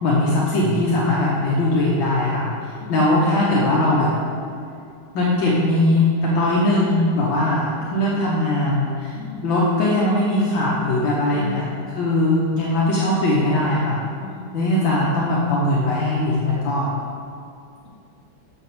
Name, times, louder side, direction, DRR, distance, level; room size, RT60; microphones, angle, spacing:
voice 1, 0.0-2.5 2.9-4.1 5.1-9.2 9.4-11.6 11.9-14.0 14.5-16.9, left 1 dB, 70° left, -5 dB, 1.7 m, -20 dB
voice 2, 2.8-3.1 9.1-9.5 11.3-12.1 14.2-14.6, left 2 dB, 35° left, -7 dB, 2.6 m, -36 dB
6.3 x 6.0 x 6.9 m, 2.5 s
omnidirectional pair, 2.2 m